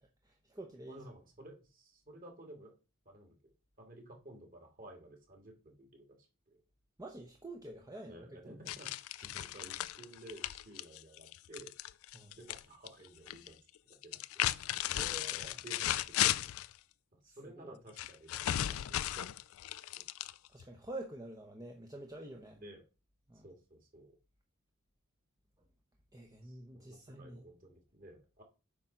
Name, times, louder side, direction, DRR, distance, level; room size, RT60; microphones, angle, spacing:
voice 1, 0.2-1.0 7.0-8.4 12.1-12.3 14.9-15.6 17.3-17.8 20.5-22.6 23.3-23.5 26.1-27.4, right 1 dB, 15° right, 0.8 m, -48 dB
voice 2, 0.9-2.8 3.1-3.4 3.8-6.6 8.1-11.8 12.3-13.6 13.8-14.5 15.3-16.6 17.1-19.3 20.0-20.1 22.5-22.8 23.4-24.2 26.4-28.4, right 1 dB, 40° right, 2.4 m, -54 dB
sound 1, 8.7-12.6 12.9-13.5 14.0-16.7 18.0-20.6, left 13 dB, 65° left, 0.4 m, -35 dB
8.6 x 3.7 x 5.8 m
head